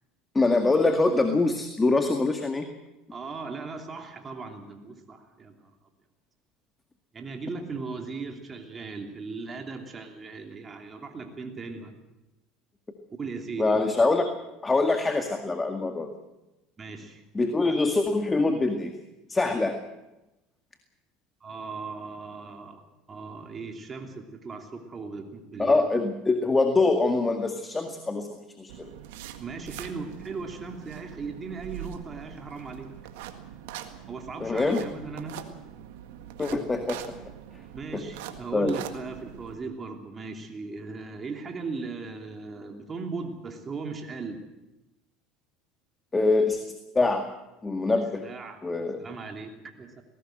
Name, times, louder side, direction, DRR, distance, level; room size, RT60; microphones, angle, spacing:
voice 1, 0.3-2.7 13.6-14.3 14.6-16.1 17.3-18.9 19.3-19.8 25.6-28.3 28.6-28.9 34.4-34.8 36.4-37.2 37.9-38.1 38.5-38.7 46.1-46.6 46.9-47.3 47.6-48.2 48.6-49.0, left 3 dB, 20° left, 6 dB, 2.0 m, -24 dB
voice 2, 3.1-5.7 7.1-12.0 13.2-13.9 16.8-17.2 21.4-25.9 29.4-32.9 34.1-35.4 37.7-44.4 48.2-50.0, right 4 dB, 30° right, 3 dB, 3.0 m, -38 dB
sound 1, 28.7-39.5, right 11 dB, 80° right, 1.8 m, -43 dB
19.5 x 18.0 x 7.8 m, 0.96 s
hypercardioid pair, 85°, 0 cm